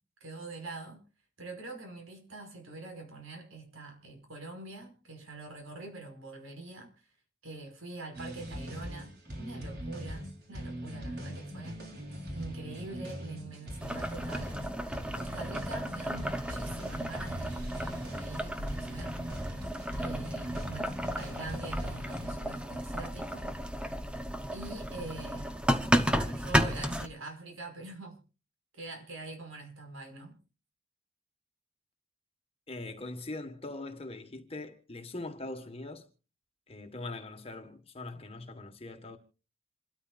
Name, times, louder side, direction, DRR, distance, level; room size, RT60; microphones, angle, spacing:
voice 1, 0.2-1.0 1.4-6.9 7.4-11.8 12.4-14.6 15.1-19.2 20.0-23.5 24.5-25.6 26.1-28.2 28.7-30.4, right 3 dB, 80° right, 5.4 m, -44 dB
sound 1, 8.1-22.3, equal, 50° right, 3.8 m, -41 dB
Boiling, 13.8-27.1, equal, 5° right, 0.9 m, -33 dB
voice 2, 32.7-36.1 36.7-39.2, left 2 dB, 25° left, 1.5 m, -41 dB
27.5 x 13.0 x 2.5 m
head